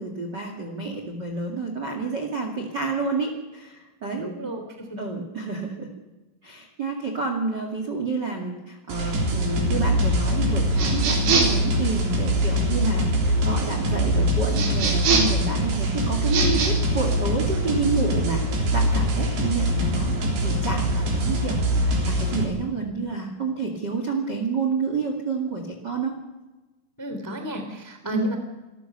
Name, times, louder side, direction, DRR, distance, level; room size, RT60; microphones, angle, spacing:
voice 1, 0.0-4.3 5.0-5.9 6.4-20.1 20.4-26.1 28.1-28.3, right 4 dB, 40° right, 3 dB, 1.7 m, -29 dB
voice 2, 4.1-5.0 27.0-28.4, left 1 dB, 5° left, 5 dB, 2.0 m, -32 dB
sound 1, 8.9-22.4, equal, 55° right, 5.4 m, -23 dB
sound 2, 10.8-11.7 14.5-15.4 16.2-16.7, right 4 dB, 75° right, 6.1 m, -23 dB
27.0 x 14.0 x 6.8 m, 1.1 s
omnidirectional pair, 5.6 m